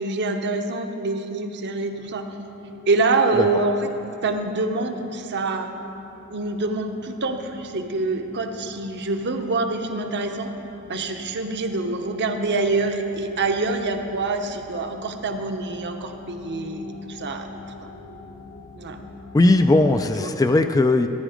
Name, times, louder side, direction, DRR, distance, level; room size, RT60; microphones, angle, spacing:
voice 1, 0.0-2.4 2.9-3.9 4.2-5.7 6.3-10.5 10.9-17.5 18.8-19.0 20.2-20.3, right 3 dB, 55° right, 5 dB, 0.9 m, -25 dB
sound 1, 1.9-20.2, left 2 dB, 70° left, 1.3 m, -43 dB
voice 2, 19.3-21.1, left 2 dB, 15° left, 8 dB, 0.3 m, -18 dB
15.0 x 9.9 x 5.0 m, 2.9 s
head